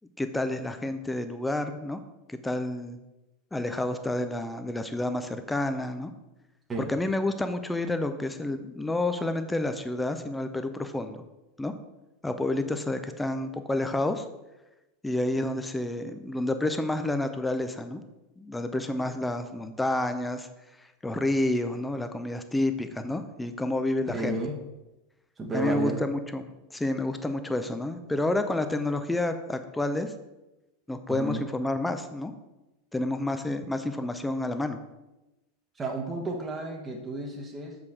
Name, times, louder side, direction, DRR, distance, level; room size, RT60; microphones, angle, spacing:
voice 1, 0.2-2.0 2.3-3.0 3.5-6.1 6.9-11.2 11.6-11.7 12.2-14.2 15.0-18.0 18.4-20.5 21.0-24.4 25.5-30.1 30.9-32.3 32.9-34.8, left 2 dB, 10° left, 9 dB, 0.7 m, -29 dB
voice 2, 24.1-24.6 25.4-26.0 31.1-31.4 35.7-37.8, right 2 dB, 20° right, 1 dB, 1.1 m, -32 dB
6.9 x 5.1 x 4.7 m, 1.0 s
figure-of-eight pair, 85°, 0 cm